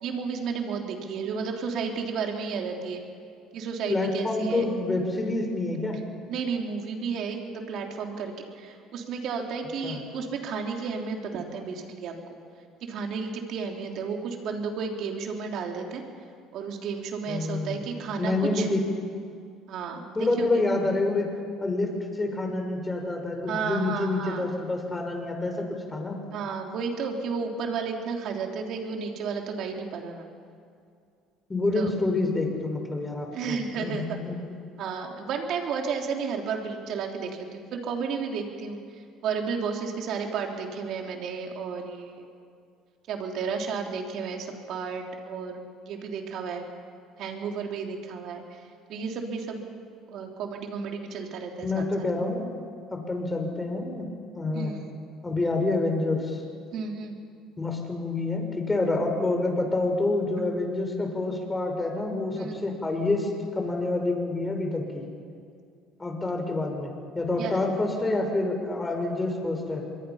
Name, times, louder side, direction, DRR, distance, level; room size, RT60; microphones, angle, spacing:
voice 1, 0.0-3.0 3.5-4.6 5.9-6.0 6.3-12.1 12.9-16.0 16.5-18.7 19.7-20.6 23.5-24.5 26.3-30.3 31.7-31.9 33.3-34.0 34.8-38.8 39.2-42.3 43.1-46.7 47.2-49.6 50.1-51.8 54.5-54.9 56.7-57.2 62.4-62.6 67.4-67.7, right 5 dB, 60° right, 2 dB, 3.5 m, -32 dB
voice 2, 3.9-6.0 9.8-10.0 17.3-17.8 18.2-18.8 20.2-21.3 21.6-26.2 31.5-34.6 51.6-52.4 52.9-54.1 54.3-54.7 55.2-56.4 57.6-65.0 66.0-69.8, left 2 dB, 15° left, 3 dB, 5.3 m, -27 dB
26.0 x 22.0 x 5.8 m, 2.3 s
supercardioid pair, 100°, 0 cm